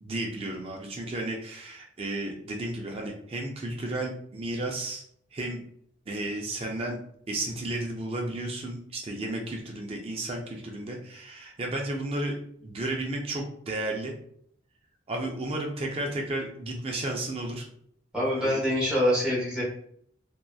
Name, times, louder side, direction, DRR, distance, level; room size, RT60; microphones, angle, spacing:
voice 1, 0.0-5.0 5.3-5.6 6.1-7.0 7.3-14.1 15.1-17.7 18.3-18.6, right 1 dB, 30° right, 1 dB, 0.3 m, -33 dB
voice 2, 18.1-19.6, equal, 5° right, -7 dB, 0.9 m, -25 dB
2.7 x 2.2 x 2.3 m, 0.65 s
head